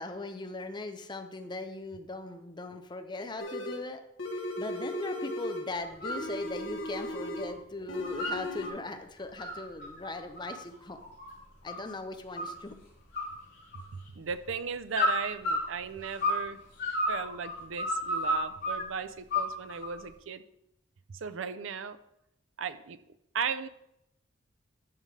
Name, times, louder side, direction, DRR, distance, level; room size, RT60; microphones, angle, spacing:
voice 1, 0.0-4.0 4.3-11.0 11.6-12.8, left 2 dB, 25° left, 6 dB, 0.7 m, -39 dB
sound 1, 3.4-3.9 4.2-5.7 6.0-7.6 7.9-8.7, left 1 dB, 75° left, 1.1 m, -36 dB
sound 2, 5.8-6.2 6.6-7.5 7.8-8.7 9.2-11.9 12.4-12.8 13.1-14.1 14.9-16.5 16.8-18.8 19.3-20.0, left 1 dB, 60° left, 3.5 m, -32 dB
voice 2, 13.9-16.6 17.1-20.4 21.1-22.0 22.6-23.0 23.3-23.7, right 6 dB, 85° right, 12 dB, 0.5 m, -36 dB
13.0 x 5.1 x 3.3 m, 0.80 s
head